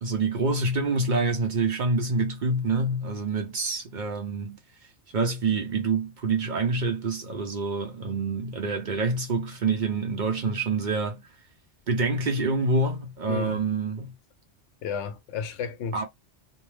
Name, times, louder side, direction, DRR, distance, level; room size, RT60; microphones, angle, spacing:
voice 1, 0.0-4.6 5.1-11.2 11.9-14.1 15.9-16.0, right 3 dB, 50° right, 0.6 m, -26 dB
voice 2, 13.3-13.6 14.8-16.0, left 6 dB, 75° left, 0.9 m, -32 dB
2.6 x 2.1 x 3.1 m
omnidirectional pair, 1.2 m